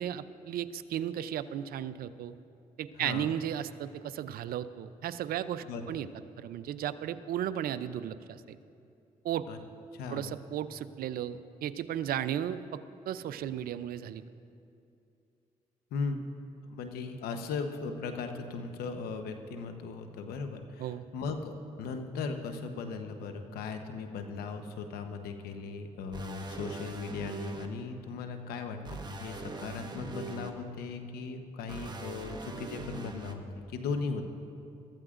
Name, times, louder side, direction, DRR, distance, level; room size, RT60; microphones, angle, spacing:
voice 1, 0.0-2.3 2.8-6.1 6.4-8.6 9.2-9.5 10.1-12.8 13.1-14.2 20.8-21.0, right 10 dB, 70° right, 14 dB, 0.5 m, -35 dB
voice 2, 3.0-3.3 5.6-5.8 9.5-9.6 9.9-10.3 15.9-16.2 16.6-33.4 33.7-34.3, left 4 dB, 85° left, 6 dB, 1.0 m, -37 dB
sound 1, 26.1-27.7 28.8-30.5 31.7-33.3, right 2 dB, 30° right, 1.3 m, -41 dB
22.0 x 13.5 x 2.5 m, 2.6 s
supercardioid pair, 60°, 16 cm